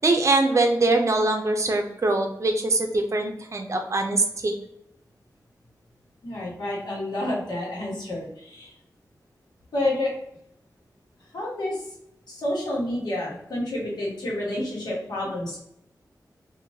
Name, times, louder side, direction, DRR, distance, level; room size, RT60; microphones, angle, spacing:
voice 1, 0.0-4.5, right 2 dB, 45° right, 3 dB, 0.5 m, -23 dB
voice 2, 6.2-8.7 9.7-10.1 11.3-11.8 12.3-15.6, left 1 dB, 85° left, -5 dB, 1.3 m, -29 dB
3.1 x 2.5 x 2.6 m, 0.77 s
wide cardioid pair, 85°, 7 cm